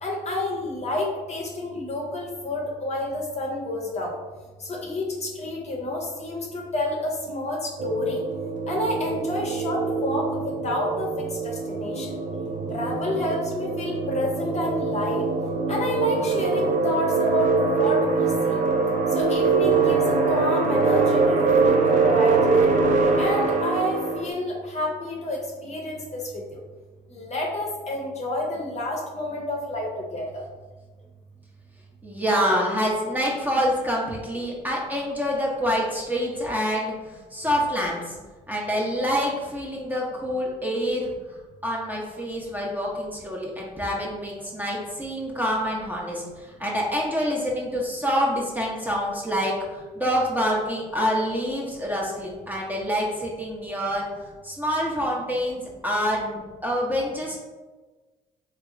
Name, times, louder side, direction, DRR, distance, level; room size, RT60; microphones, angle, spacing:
voice 1, 0.0-4.2 4.6-8.2 8.7-12.2 12.7-15.3 15.7-18.6 19.1-22.7 23.2-26.6 27.1-30.4, left 1 dB, 40° left, -1 dB, 0.7 m, -29 dB
sound 1, 7.8-24.3, right 4 dB, 45° right, 0.4 m, -23 dB
voice 2, 32.0-38.2 38.5-41.1 41.6-54.1 54.4-57.4, equal, 10° right, -3 dB, 0.8 m, -26 dB
3.4 x 2.1 x 2.5 m, 1.3 s
hypercardioid pair, 55°, 18 cm